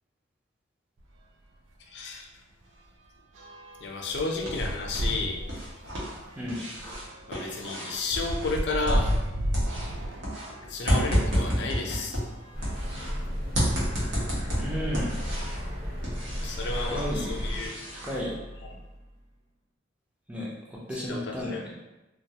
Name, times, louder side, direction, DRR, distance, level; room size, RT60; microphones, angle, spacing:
sound 1, 1.0-1.2 1.5-1.7 2.0-11.5 12.2-13.5 14.2-14.3 14.5-14.6 16.3-16.4 17.1-17.4 17.7-19.0, equal, 90° right, 0.4 m, -34 dB
voice 1, 1.9-2.3 3.8-5.4 7.3-9.1 10.7-12.2 16.4-17.7 21.1-21.6, left 3 dB, 60° left, 1 dB, 0.4 m, -32 dB
sound 2, 4.0-5.2 5.4-9.3 9.5-13.1 13.5-15.7 16.0-18.2, equal, 70° right, 0.9 m, -31 dB
sound 3, 12.5-17.7, equal, 35° right, 1.0 m, -33 dB
voice 2, 14.5-15.1 16.9-17.4 18.0-18.3 20.3-21.7, equal, 5° right, -5 dB, 0.5 m, -33 dB
2.3 x 2.2 x 2.8 m, 0.99 s
head